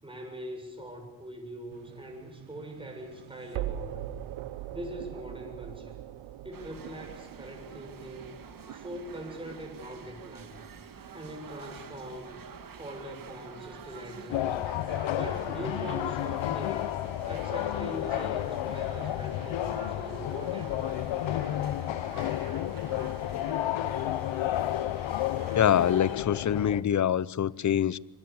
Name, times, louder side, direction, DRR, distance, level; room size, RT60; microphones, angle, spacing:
voice 1, 0.0-4.1 4.7-6.0 6.4-8.4 8.7-10.6 11.1-12.4 12.8-14.6 15.1-16.9 17.3-20.8, equal, 10° right, 7.2 m, -42 dB
sound 1, 1.7-12.7, right 12 dB, 80° right, 0.9 m, -43 dB
sound 2, 6.5-26.2, right 6 dB, 45° right, 1.8 m, -47 dB
sound 3, 14.3-26.8, left 13 dB, 75° left, 1.0 m, -31 dB
voice 2, 25.5-28.0, left 9 dB, 40° left, 0.7 m, -25 dB
25.5 x 22.0 x 7.2 m
cardioid pair, 95°, 46 cm